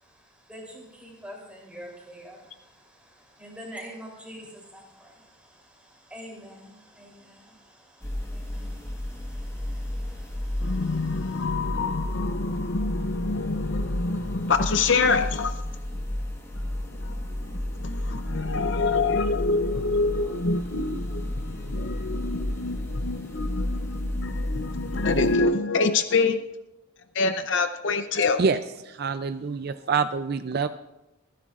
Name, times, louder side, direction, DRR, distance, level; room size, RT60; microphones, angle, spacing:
voice 1, 0.0-11.4, equal, 5° right, -2 dB, 3.2 m, -46 dB
sound 1, 8.0-25.4, left 1 dB, 15° left, 1.2 m, -32 dB
voice 2, 10.6-15.6 16.9-26.4 27.1-28.4, left 3 dB, 55° left, 9 dB, 0.6 m, -26 dB
voice 3, 28.8-30.7, right 5 dB, 50° right, 10 dB, 0.4 m, -26 dB
25.5 x 10.5 x 2.5 m, 0.94 s
head